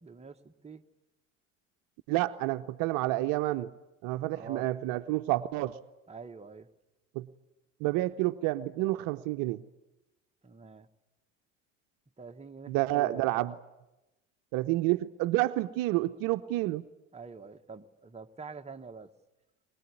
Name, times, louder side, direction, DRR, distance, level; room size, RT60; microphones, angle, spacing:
voice 1, 0.0-0.8 4.3-4.7 6.1-6.7 10.4-10.9 12.2-13.3 17.1-19.1, right 5 dB, 15° right, 5 dB, 1.4 m, -46 dB
voice 2, 2.1-3.7 4.0-5.8 7.1-7.3 7.8-9.6 12.7-13.5 14.5-16.8, right 17 dB, 60° right, 11 dB, 0.8 m, -29 dB
22.5 x 21.5 x 9.7 m, 0.99 s
hypercardioid pair, 65°, 38 cm